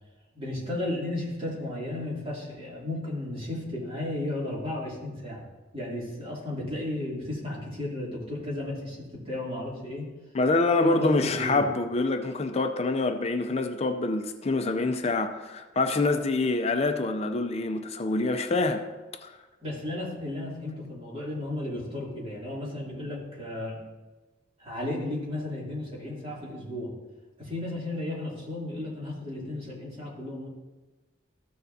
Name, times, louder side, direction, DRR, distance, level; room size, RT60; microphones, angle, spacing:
voice 1, 0.3-5.4 5.7-10.1 10.8-11.6 19.6-23.8 24.6-26.9 27.4-30.5, left 1 dB, 30° right, 2.6 m, -34 dB
voice 2, 10.3-18.9 19.2-19.3, left 3 dB, 35° left, 0.5 m, -26 dB
14.0 x 6.6 x 2.7 m
head